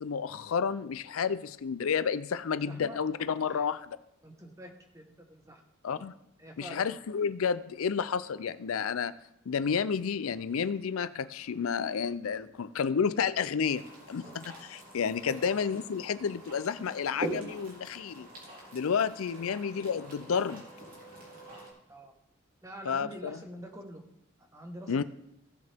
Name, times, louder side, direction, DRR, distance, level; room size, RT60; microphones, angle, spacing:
voice 1, 0.0-3.8 5.8-6.1 6.6-9.1 9.5-18.3 18.7-20.6 22.9-23.4 24.9-25.0, left 6 dB, 85° left, 15 dB, 0.5 m, -31 dB
voice 2, 2.6-3.0 3.4-3.7 4.2-5.6 5.9-6.0 6.4-6.9 15.2-15.5 19.3-19.6 21.9-22.1 22.6-24.0 24.4-25.0, right 1 dB, 15° right, 3 dB, 1.2 m, -46 dB
sound 1, 13.6-21.7, right 2 dB, 45° right, 3.2 m, -44 dB
16.5 x 6.5 x 3.5 m, 0.80 s
head